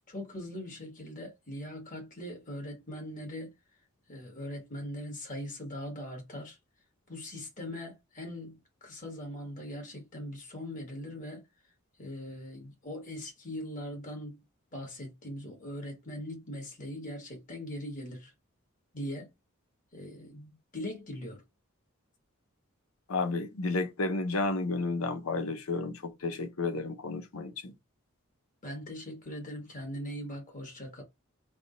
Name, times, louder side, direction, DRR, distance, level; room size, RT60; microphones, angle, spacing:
voice 1, 0.1-3.5 4.1-6.6 7.1-11.4 12.0-14.4 14.7-18.3 18.9-19.3 19.9-21.4 28.6-31.0, left 1 dB, 40° left, 1.6 m, -41 dB
voice 2, 23.1-27.7, left 3 dB, 85° left, 0.8 m, -32 dB
3.5 x 2.3 x 3.8 m
head